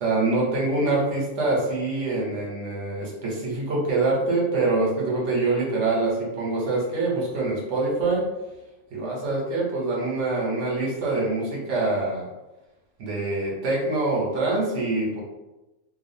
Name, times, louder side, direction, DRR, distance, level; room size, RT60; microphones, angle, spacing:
voice 1, 0.0-8.3 8.9-12.3 13.0-15.2, right 2 dB, 70° right, -3 dB, 1.1 m, -25 dB
2.4 x 2.3 x 2.6 m, 1.0 s
omnidirectional pair, 1.3 m